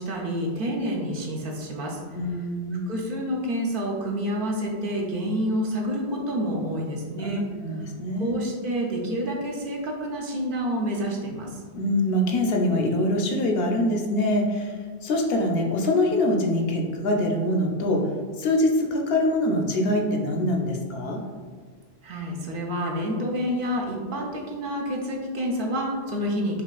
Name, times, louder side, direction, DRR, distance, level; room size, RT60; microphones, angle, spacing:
voice 1, 0.0-2.0 2.9-7.4 8.2-11.5 22.0-26.6, equal, 60° right, -1 dB, 0.7 m, -28 dB
voice 2, 2.1-2.9 7.2-8.3 11.7-14.8 15.0-18.1 18.4-21.2, left 1 dB, 70° left, 2 dB, 0.8 m, -24 dB
5.3 x 2.4 x 2.3 m, 1.5 s
omnidirectional pair, 1.1 m